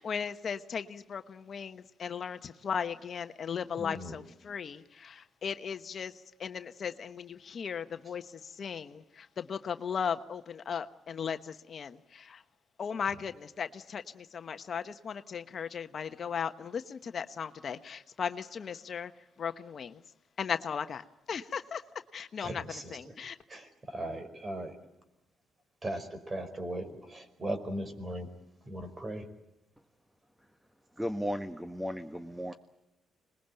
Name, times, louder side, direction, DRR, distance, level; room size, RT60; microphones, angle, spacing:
voice 1, 0.0-12.4 12.8-19.1 19.4-20.0 20.4-21.8 22.1-23.4, left 7 dB, 50° left, 9 dB, 1.1 m, -37 dB
voice 2, 3.8-4.1 22.4-23.1 23.5-24.8 25.8-28.3 28.6-29.2, right 1 dB, 30° right, 9 dB, 5.0 m, -38 dB
voice 3, 31.0-32.5, equal, 5° right, 9 dB, 1.2 m, -35 dB
26.0 x 21.0 x 9.0 m, 0.93 s
cardioid pair, 90°, 0 cm